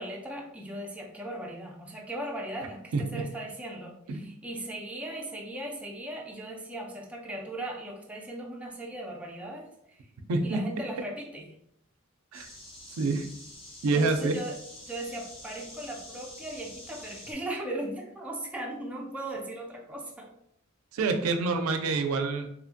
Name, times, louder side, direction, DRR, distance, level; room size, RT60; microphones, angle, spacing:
voice 1, 0.0-10.0 10.4-11.5 13.9-20.3, right 1 dB, 5° right, 0 dB, 0.3 m, -38 dB
sound 1, 12.3-17.3, left 1 dB, 30° left, 0.8 m, -47 dB
voice 2, 13.8-14.3 20.9-22.5, right 3 dB, 85° right, 6 dB, 0.4 m, -27 dB
2.7 x 2.5 x 2.4 m, 0.72 s
head